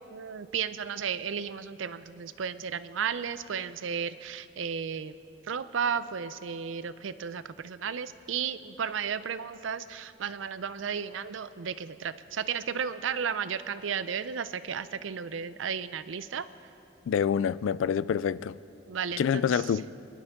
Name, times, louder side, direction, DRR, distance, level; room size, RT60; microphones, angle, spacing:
voice 1, 0.1-5.2 5.5-16.5 18.9-19.7, right 7 dB, 85° right, 0.5 m, -34 dB
voice 2, 17.1-18.6 19.2-19.9, left 7 dB, 85° left, 0.3 m, -27 dB
23.5 x 11.5 x 3.7 m
head